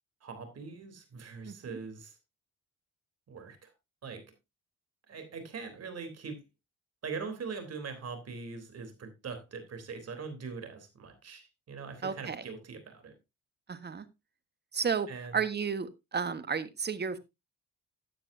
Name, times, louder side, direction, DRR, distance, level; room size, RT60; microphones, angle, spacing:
voice 1, 0.2-2.1 3.3-3.7 4.0-4.3 5.1-6.4 7.0-13.1 15.1-15.4, right 5 dB, 55° right, 3.6 m, -42 dB
voice 2, 12.0-12.4 13.7-14.0 14.7-17.2, right 6 dB, 35° right, 1.5 m, -32 dB
14.0 x 8.9 x 2.7 m
cardioid pair, 90°, 30 cm